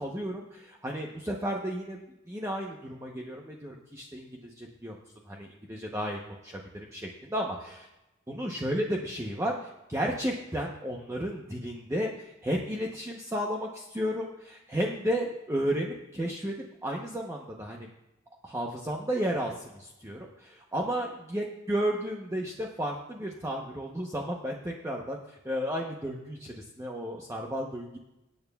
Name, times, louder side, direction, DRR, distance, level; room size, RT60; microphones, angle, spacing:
voice 1, 0.0-2.0 2.3-5.0 5.3-7.9 8.3-17.9 18.4-28.0, equal, 15° right, -1 dB, 0.8 m, -33 dB
21.0 x 9.0 x 2.3 m, 0.95 s
head